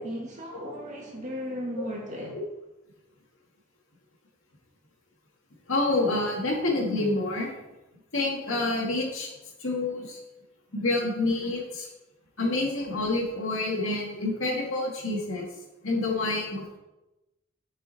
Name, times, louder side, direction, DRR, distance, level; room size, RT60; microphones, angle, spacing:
voice 1, 0.0-2.4, equal, 35° right, -1 dB, 1.9 m, -36 dB
voice 2, 5.7-7.5 8.1-9.3 9.6-10.2 10.7-11.9 12.4-15.5 15.8-16.8, left 2 dB, 85° left, -1 dB, 2.1 m, -28 dB
9.2 x 5.5 x 4.2 m, 1.0 s
head